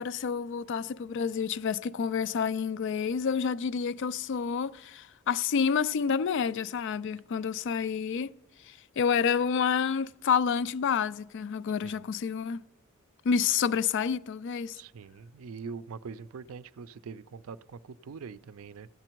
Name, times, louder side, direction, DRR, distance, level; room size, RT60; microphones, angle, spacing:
voice 1, 0.0-8.3 8.6-12.6 13.2-14.8, left 6 dB, 55° left, 0.4 m, -29 dB
voice 2, 14.7-18.9, right 5 dB, 75° right, 0.4 m, -43 dB
15.0 x 8.8 x 4.5 m
head